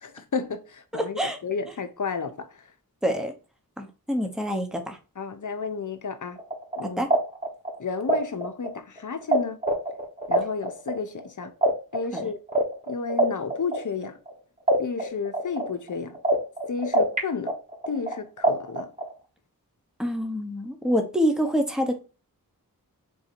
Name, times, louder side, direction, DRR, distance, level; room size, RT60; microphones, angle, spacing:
voice 1, 0.0-2.7 5.2-6.4 6.8-7.0 7.8-9.6 10.3-11.5 11.9-12.4 12.9-14.2 14.8-16.2 16.7-17.6 17.9-18.9, left 5 dB, 55° left, 0.7 m, -32 dB
voice 2, 0.9-1.4 3.0-3.3 3.8-5.0 7.0-7.1 12.1-12.2 20.0-22.0, equal, ahead, 0.8 m, -26 dB
sound 1, 6.4-9.4 9.6-14.3 14.7-17.2 17.5-19.1, right 1 dB, 20° right, 1.1 m, -24 dB
3.8 x 2.7 x 4.4 m
wide cardioid pair, 65°, 36 cm